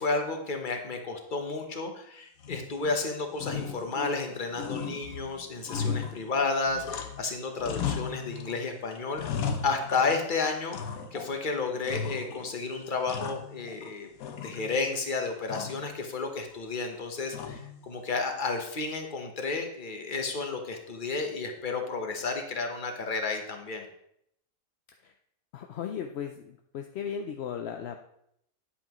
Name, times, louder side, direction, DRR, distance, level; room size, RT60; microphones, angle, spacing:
voice 1, 0.0-9.2 9.6-14.1 14.4-23.9, left 4 dB, 40° left, 4 dB, 1.1 m, -32 dB
sound 1, 2.4-3.0 3.3-4.3 4.6-7.3 7.6-8.6 8.9-10.3 10.7-11.4 11.8-12.5 12.8-13.9 14.2-14.9 15.5-15.9 17.3-17.8, left 6 dB, 80° left, 1.3 m, -36 dB
voice 2, 25.5-28.1, left 8 dB, 65° left, 5 dB, 0.7 m, -36 dB
9.7 x 8.5 x 3.0 m, 0.74 s
omnidirectional pair, 1.5 m